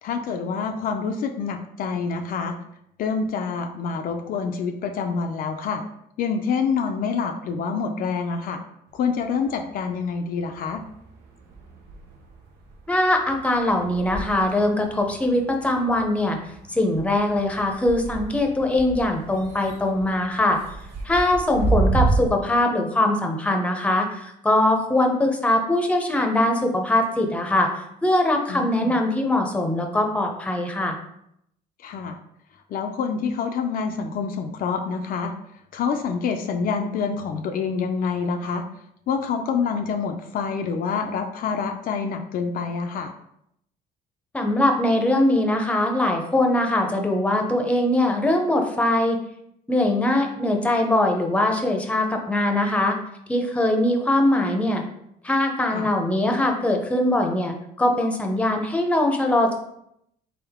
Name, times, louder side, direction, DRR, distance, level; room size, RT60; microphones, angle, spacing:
voice 1, 0.0-2.6 3.0-5.8 6.2-8.6 8.9-10.8 28.5-28.9 31.8-32.2 32.7-35.3 35.7-38.6 39.1-43.1 55.7-55.9, left 5 dB, 60° left, 5 dB, 0.5 m, -27 dB
sound 1, 8.9-10.1 10.5-22.2, right 3 dB, 90° right, 0.8 m, -31 dB
voice 2, 12.9-16.4 16.7-20.6 21.0-31.0 44.3-49.2 49.7-53.0 53.3-54.8 55.2-59.5, left 1 dB, 5° left, 3 dB, 0.7 m, -22 dB
3.7 x 3.5 x 3.5 m, 0.76 s
cardioid pair, 110°, 17 cm